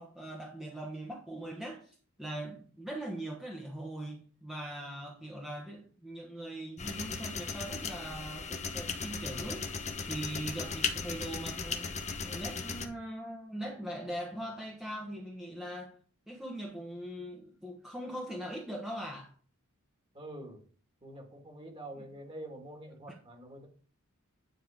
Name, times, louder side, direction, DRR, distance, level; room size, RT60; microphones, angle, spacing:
voice 1, 0.0-11.9 12.2-15.9 16.3-19.3 21.9-22.1 23.1-23.2, right 1 dB, ahead, 1.2 m, -41 dB
sound 1, 6.8-12.9, left 5 dB, 30° left, 1.0 m, -37 dB
voice 2, 20.1-20.6 21.0-23.7, right 1 dB, 25° right, 2.0 m, -46 dB
9.4 x 4.4 x 5.0 m
head